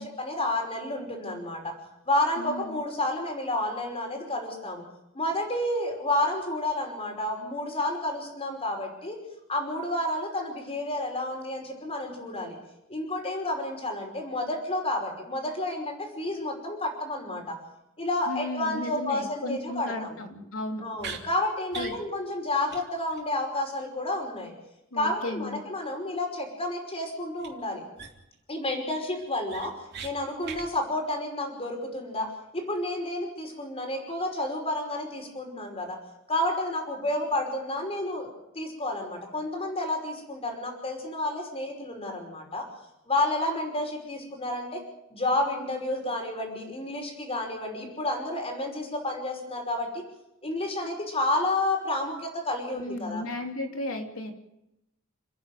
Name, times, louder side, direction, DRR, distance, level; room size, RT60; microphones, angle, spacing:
voice 1, 0.0-1.7 2.1-4.8 5.1-9.2 9.5-12.6 12.9-17.6 18.0-20.2 20.8-24.5 24.9-27.8 28.5-29.7 30.0-36.0 36.3-38.3 38.5-42.6 43.1-44.8 45.1-50.0 50.4-53.2, left 1 dB, 30° left, 2 dB, 5.5 m, -30 dB
voice 2, 2.4-2.8 18.3-20.8 21.7-22.0 24.9-25.6 52.7-54.3, left 1 dB, 75° left, 4 dB, 3.3 m, -35 dB
sound 1, 21.0-21.2 21.7-22.0 22.3-22.4 22.7-22.8 23.1-23.2 27.4-27.5 28.0-28.3 28.7-28.8 29.2-30.1 30.4-30.7, right 6 dB, 50° right, 3.2 m, -39 dB
29.5 x 10.5 x 9.3 m, 0.86 s
head